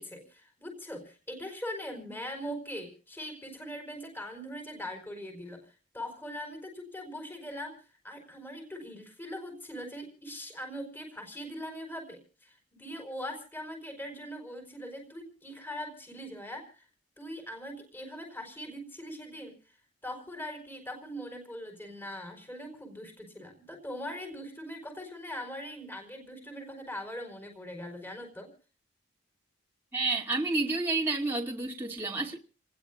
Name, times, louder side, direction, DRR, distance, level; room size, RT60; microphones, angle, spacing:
voice 1, 0.0-16.8 17.2-19.5 20.0-28.5, equal, 10° left, 4.6 m, -41 dB
voice 2, 29.9-32.4, right 3 dB, 10° right, 2.5 m, -30 dB
29.0 x 20.0 x 2.5 m
head